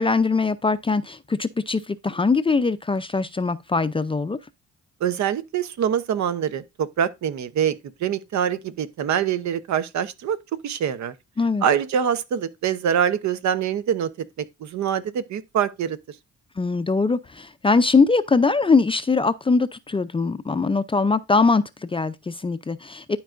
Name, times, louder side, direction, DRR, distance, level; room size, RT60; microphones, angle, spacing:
voice 1, 0.0-4.4 11.4-11.6 16.6-23.2, left 4 dB, 20° left, 0.4 m, -22 dB
voice 2, 5.0-10.4 10.6-11.1 11.6-14.1 14.4-16.2, right 8 dB, 65° right, 0.8 m, -24 dB
11.5 x 4.6 x 2.5 m
cardioid pair, 90°, 30 cm